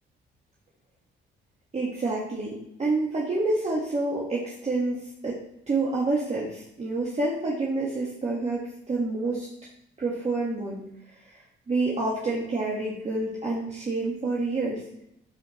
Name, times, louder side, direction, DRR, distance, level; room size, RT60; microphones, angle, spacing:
voice 1, 1.7-2.5 2.8-5.4 5.7-9.5 10.0-10.8 11.2-14.8, right 2 dB, 35° right, -5 dB, 1.7 m, -28 dB
12.5 x 4.7 x 3.2 m, 0.79 s
cardioid pair, 90°, 20 cm